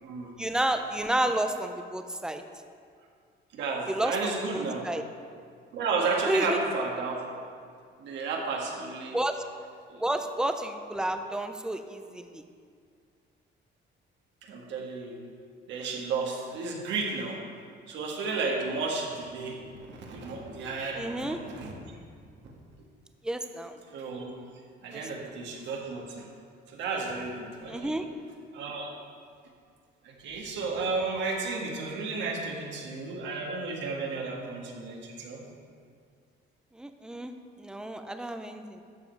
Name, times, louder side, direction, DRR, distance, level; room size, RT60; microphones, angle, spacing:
voice 1, 0.4-2.4 3.9-5.0 6.3-6.6 9.1-9.4 10.0-12.4 20.9-21.4 23.2-23.8 24.9-25.0 27.7-28.1 36.8-37.3 37.6-38.8, right 1 dB, 5° right, 7 dB, 0.4 m, -31 dB
voice 2, 3.5-4.9 5.7-7.4 8.0-9.2 9.9-10.0 14.4-15.2 15.7-17.4 17.9-22.0 23.9-24.3 24.8-26.3 26.7-27.9 28.5-28.9 30.1-35.4, right 4 dB, 70° right, -1 dB, 1.8 m, -33 dB
12.0 x 7.5 x 4.6 m, 2.2 s
cardioid pair, 175°, 19 cm